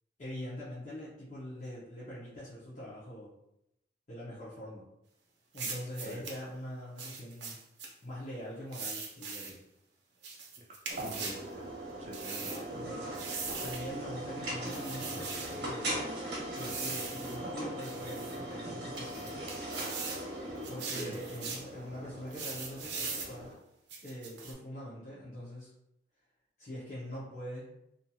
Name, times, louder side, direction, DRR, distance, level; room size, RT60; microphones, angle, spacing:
voice 1, 0.2-3.3 4.1-4.9 5.5-7.6 8.0-9.6 12.7-13.2 13.6-16.0 16.5-19.5 20.7-23.5 24.0-25.7 26.6-27.7, equal, 40° left, -9 dB, 0.7 m, -43 dB
sound 1, 5.5-6.4 7.0-7.9 8.7-9.6 10.2-11.4 12.1-12.6 13.1-13.9 14.6-15.6 16.6-17.4 17.8-18.4 19.0-20.2 20.6-21.7 22.3-23.3 23.9-24.5, right 4 dB, 85° right, 0.5 m, -40 dB
voice 2, 10.6-11.7 12.0-13.0 20.9-21.2, equal, 40° right, 0 dB, 0.3 m, -46 dB
sound 2, 10.9-23.5, right 1 dB, 65° right, 0.9 m, -40 dB
2.8 x 2.6 x 2.2 m, 0.83 s
head